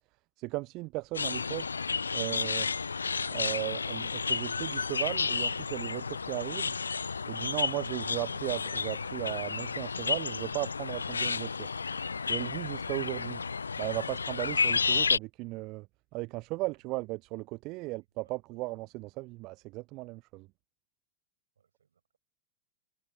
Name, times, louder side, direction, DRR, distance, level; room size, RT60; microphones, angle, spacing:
voice 1, 0.4-1.7 2.1-3.0 3.3-6.7 7.3-11.7 12.3-13.4 13.8-15.9 16.1-20.5, right 22 dB, 40° right, 0.5 m, -36 dB
sound 1, 1.1-15.2, left 5 dB, 75° left, 0.4 m, -32 dB
voice 2, 18.2-18.6 21.6-22.2, right 7 dB, 70° right, 5.8 m, -68 dB
figure-of-eight pair, 90°, 0 cm